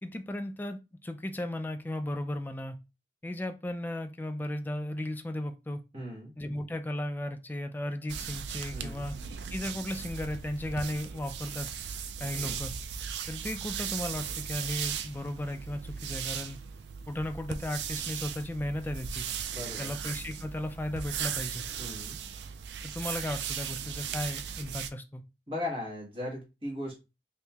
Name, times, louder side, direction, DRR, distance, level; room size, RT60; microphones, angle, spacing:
voice 1, 0.0-2.8 3.2-5.8 6.4-9.2 9.5-11.7 12.2-12.7 13.3-16.6 17.1-19.3 19.8-21.6 22.8-25.2, left 1 dB, 10° left, 0.3 m, -35 dB
voice 2, 5.9-6.3 8.7-9.1 12.4-12.6 19.5-20.0 21.8-22.2 25.5-27.0, left 1 dB, 30° right, 1.3 m, -38 dB
sound 1, 8.1-24.9, right 7 dB, 75° right, 0.4 m, -37 dB
2.8 x 2.7 x 3.4 m
head